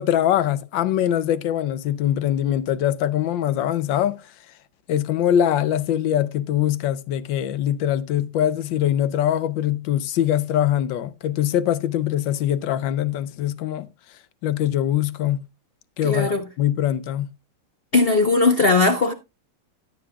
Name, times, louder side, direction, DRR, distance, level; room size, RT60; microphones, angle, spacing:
voice 1, 0.0-4.2 4.9-13.9 14.4-15.4 16.0-17.3, left 11 dB, 70° left, 1.3 m, -22 dB
voice 2, 16.0-16.4 17.9-19.1, left 3 dB, 45° left, 0.7 m, -18 dB
13.5 x 9.3 x 2.3 m
omnidirectional pair, 2.4 m